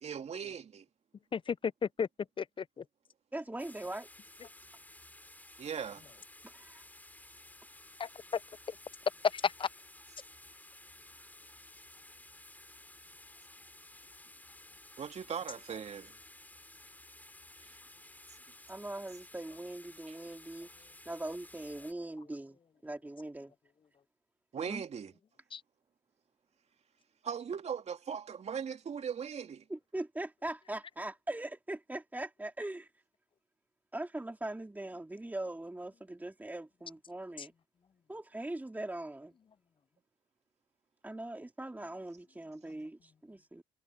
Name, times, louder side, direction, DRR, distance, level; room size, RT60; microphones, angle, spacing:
voice 1, 0.0-0.8 5.6-6.1 15.0-16.1 17.6-17.8 20.1-20.2 24.5-25.1 27.2-29.7, right 7 dB, 45° right, 2.5 m, -39 dB
voice 2, 1.3-2.1 2.4-2.8 8.0-8.4 8.7-8.8 9.3-9.7 25.5-25.6 37.4-37.5, left 6 dB, 30° left, 0.7 m, -34 dB
voice 3, 3.3-4.1 6.4-6.8 18.7-23.5 24.6-24.8 29.7-32.9 33.9-37.5 38.1-39.3 41.0-43.6, right 1 dB, 10° right, 2.9 m, -41 dB
sound 1, 3.6-21.9, left 1 dB, 10° left, 3.2 m, -55 dB
hypercardioid pair, 60°, 16 cm